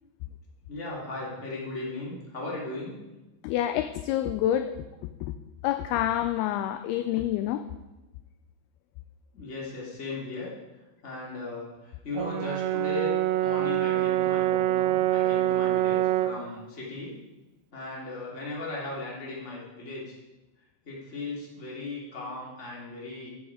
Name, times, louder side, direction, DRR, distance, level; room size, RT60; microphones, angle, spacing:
voice 1, 0.7-3.0 9.3-17.1 17.7-20.2 20.8-23.3, left 2 dB, 20° left, -5 dB, 2.7 m, -37 dB
voice 2, 3.4-4.7 5.2-5.3 5.6-7.6, left 12 dB, 80° left, 10 dB, 2.3 m, -27 dB
Brass instrument, 12.2-16.5, right 14 dB, 90° right, 2.1 m, -25 dB
13.5 x 8.3 x 4.9 m, 1.1 s
omnidirectional pair, 4.9 m